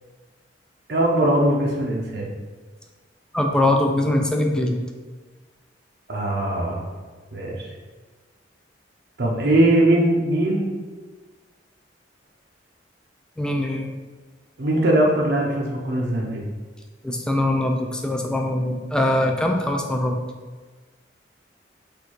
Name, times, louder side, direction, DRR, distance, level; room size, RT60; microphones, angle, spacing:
voice 1, 0.9-2.3 6.1-6.9 7.3-7.7 9.2-10.7 14.6-16.4, right 1 dB, 60° right, -1 dB, 0.7 m, -20 dB
voice 2, 3.3-4.8 13.4-13.9 17.0-20.2, left 1 dB, 5° left, 2 dB, 0.4 m, -22 dB
4.4 x 2.6 x 4.5 m, 1.4 s
head